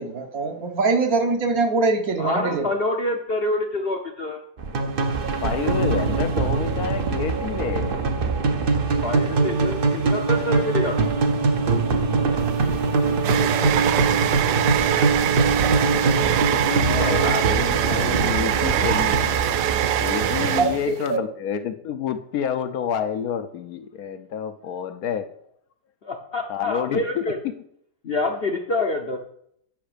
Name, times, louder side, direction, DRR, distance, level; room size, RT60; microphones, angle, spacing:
voice 1, 0.0-2.7 20.6-20.8 21.1-21.2, right 3 dB, 60° right, 1.5 m, -22 dB
voice 2, 2.2-4.4 9.0-11.1 16.8-17.3 26.0-27.4 28.0-29.2, left 2 dB, 50° left, 0.8 m, -27 dB
sound 1, 4.6-20.8, right 4 dB, 45° right, 0.7 m, -23 dB
voice 3, 5.4-8.0 16.5-19.3 20.0-25.3 26.5-27.3, left 8 dB, 70° left, 1.1 m, -29 dB
sound 2, 12.4-21.1, right 11 dB, 80° right, 1.2 m, -24 dB
8.9 x 5.6 x 5.0 m
omnidirectional pair, 1.8 m